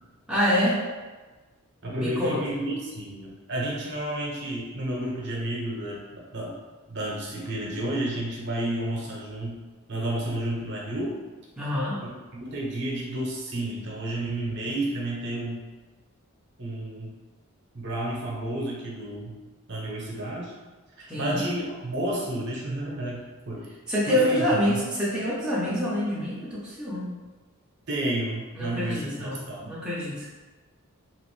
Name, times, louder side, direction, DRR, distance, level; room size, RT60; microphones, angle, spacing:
voice 1, 0.3-0.8 1.9-2.4 11.6-12.0 21.1-21.5 23.9-27.1 28.5-30.3, equal, 5° right, -8 dB, 0.6 m, -26 dB
voice 2, 1.8-6.5 6.9-9.6 9.9-11.2 12.0-15.6 16.6-17.1 17.7-19.4 19.7-20.6 21.0-23.6 24.1-24.5 27.9-29.7, right 1 dB, 55° right, -4 dB, 0.7 m, -31 dB
2.9 x 2.5 x 3.1 m, 1.3 s
head